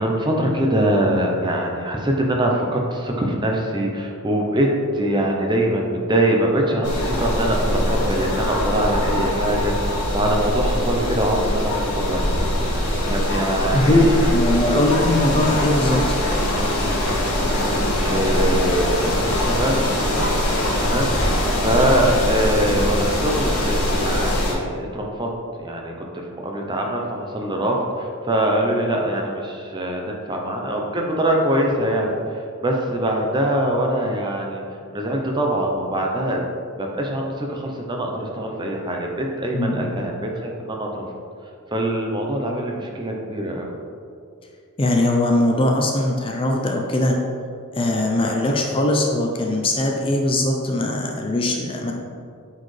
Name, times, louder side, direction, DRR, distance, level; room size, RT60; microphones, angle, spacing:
voice 1, 0.0-4.7 4.9-12.6 13.1-14.2 14.7-14.8 17.6-19.8 20.7-25.3 25.6-34.6 34.9-36.4 36.8-41.1 41.7-43.7, right 1 dB, 20° right, 0 dB, 0.7 m, -23 dB
sound 1, 6.8-24.5, left 1 dB, 85° left, 1.5 m, -22 dB
voice 2, 13.7-16.2 39.5-40.0 44.8-47.2 47.7-51.9, left 1 dB, 25° left, 1 dB, 0.5 m, -20 dB
8.5 x 4.3 x 3.3 m, 2.3 s
head